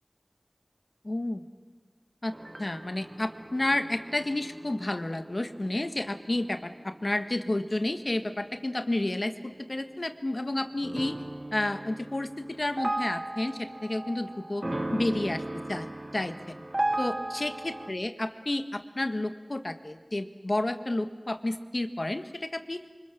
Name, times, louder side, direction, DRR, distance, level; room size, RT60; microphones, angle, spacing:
voice 1, 1.0-1.4 2.2-11.2 11.5-14.6 14.9-15.4 15.7-15.9 16.1-16.6 17.0-22.8, left 1 dB, 55° left, 8 dB, 1.5 m, -31 dB
sound 1, 2.3-10.1 10.8-17.9, right 1 dB, 40° right, 0.8 m, -37 dB
28.5 x 25.0 x 7.1 m, 1.4 s
wide cardioid pair, 50°, 0 cm